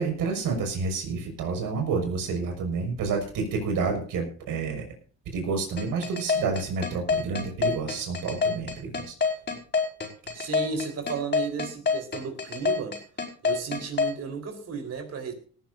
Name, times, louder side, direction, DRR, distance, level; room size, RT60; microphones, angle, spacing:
voice 1, 0.0-4.8 5.3-9.1, right 4 dB, 80° right, 3 dB, 6.1 m, -29 dB
sound 1, 5.8-14.1, left 5 dB, 30° left, 4.6 m, -26 dB
voice 2, 10.3-13.0 13.4-15.3, right 5 dB, 50° right, 6 dB, 4.4 m, -33 dB
18.5 x 14.5 x 2.7 m, 0.42 s
cardioid pair, 125°, 32 cm